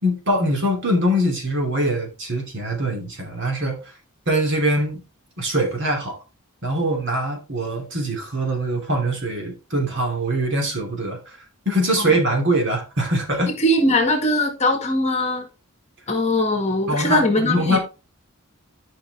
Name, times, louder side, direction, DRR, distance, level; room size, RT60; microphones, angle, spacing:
voice 1, 0.0-3.8 4.3-5.0 5.4-6.2 6.6-11.4 11.6-13.5 16.9-17.8, right 1 dB, 55° right, 3.0 m, -23 dB
voice 2, 13.6-15.5 16.1-17.8, left 1 dB, 30° left, 1.8 m, -20 dB
11.0 x 5.7 x 3.5 m
head